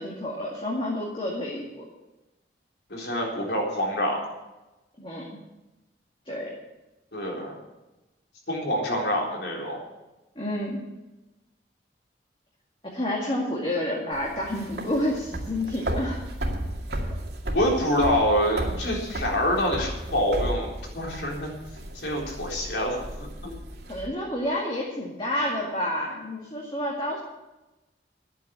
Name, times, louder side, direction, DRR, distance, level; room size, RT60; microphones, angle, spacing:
voice 1, 0.0-1.8 5.0-5.3 6.3-6.5 10.4-10.8 12.8-16.2 23.9-27.2, left 1 dB, 30° left, -3 dB, 2.2 m, -29 dB
voice 2, 2.9-4.2 7.1-7.6 8.5-9.8 17.5-21.5 21.9-23.5, equal, 75° left, -2 dB, 3.9 m, -26 dB
sound 1, 14.1-24.1, right 1 dB, 70° right, 2.3 m, -34 dB
11.5 x 8.7 x 8.8 m, 1.0 s
head